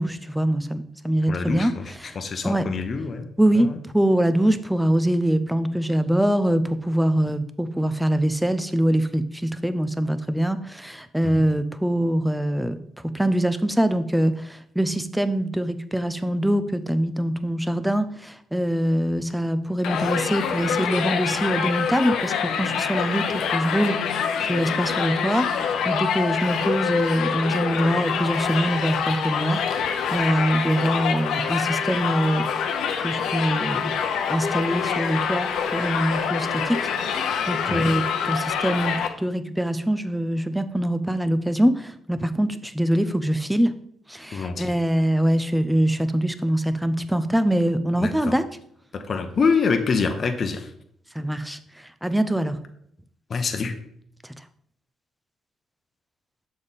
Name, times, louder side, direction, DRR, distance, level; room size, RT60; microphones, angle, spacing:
voice 1, 0.0-1.7 2.0-2.2 2.4-2.7 3.4-32.5 33.0-33.9 34.3-43.7 44.1-48.4 51.1-52.6, right 1 dB, 5° right, 11 dB, 0.5 m, -24 dB
voice 2, 1.3-3.3 3.5-3.8 11.2-11.5 37.7-37.9 44.3-44.7 48.0-48.4 48.9-50.7 53.3-53.7, left 5 dB, 45° left, 6 dB, 0.8 m, -26 dB
Crowd, 19.8-39.1, left 7 dB, 80° left, 0.7 m, -26 dB
6.9 x 5.1 x 4.1 m, 0.71 s
cardioid pair, 90°, 0 cm